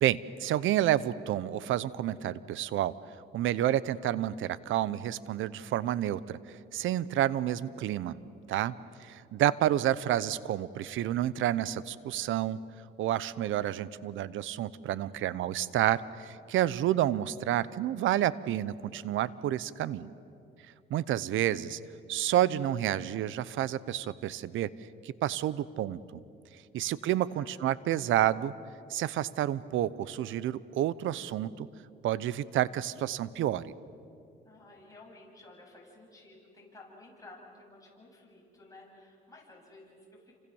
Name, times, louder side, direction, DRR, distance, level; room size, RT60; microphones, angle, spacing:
voice 1, 0.0-2.9 3.3-6.4 6.7-8.2 8.5-12.6 13.0-20.1 20.9-21.8 22.1-24.7 25.0-26.2 26.7-28.5 28.9-31.7 32.0-33.7, right 12 dB, 80° right, 18 dB, 0.8 m, -29 dB
voice 2, 26.6-27.8 34.4-40.4, left 2 dB, 15° left, -2 dB, 7.8 m, -54 dB
29.0 x 26.0 x 7.1 m, 2.5 s
cardioid pair, 90°, 20 cm